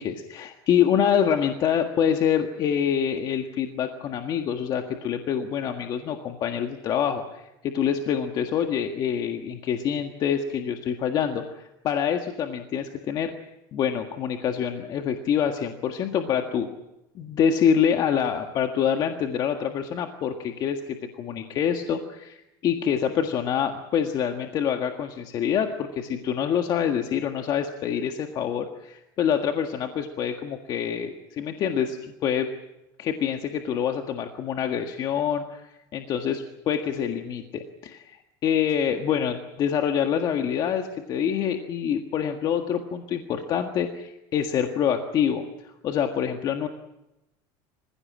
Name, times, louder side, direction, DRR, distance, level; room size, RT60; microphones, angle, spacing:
voice 1, 0.0-13.3 13.7-16.7 17.1-32.5 33.0-45.4 45.8-46.7, left 8 dB, 45° left, 5 dB, 1.7 m, -26 dB
26.5 x 16.0 x 8.7 m, 0.93 s
supercardioid pair, 130°, 10 cm